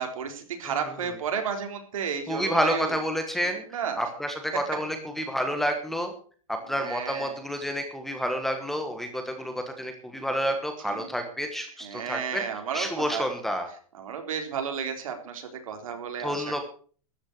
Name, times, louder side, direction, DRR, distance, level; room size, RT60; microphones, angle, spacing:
voice 1, 0.0-2.9 3.7-4.0 6.7-7.3 10.8-11.1 11.8-13.3 14.0-16.4, right 7 dB, 75° right, 5 dB, 4.0 m, -32 dB
voice 2, 0.6-1.1 2.3-3.6 4.0-6.1 6.5-12.4 12.7-13.7 16.2-16.6, equal, ahead, 6 dB, 1.3 m, -29 dB
13.0 x 9.7 x 6.6 m, 0.43 s
supercardioid pair, 170°, 18 cm